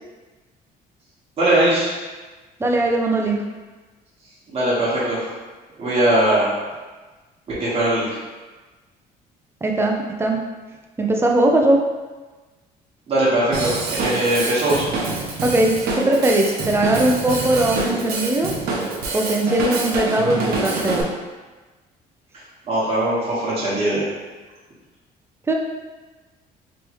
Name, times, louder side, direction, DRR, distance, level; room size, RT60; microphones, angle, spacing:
voice 1, 1.4-1.9 4.5-5.2 5.8-6.5 7.6-8.1 13.1-13.7 14.0-14.9 22.7-24.0, right 1 dB, 35° right, -9 dB, 1.3 m, -20 dB
voice 2, 2.6-3.4 9.6-10.4 11.0-11.8 15.4-18.5 19.1-21.1 25.5-25.6, right 1 dB, 15° right, 1 dB, 0.5 m, -19 dB
Drum kit / Drum, 13.5-21.0, right 3 dB, 65° right, 0.7 m, -26 dB
3.3 x 3.1 x 3.0 m, 1.3 s
cardioid pair, 110°, 17 cm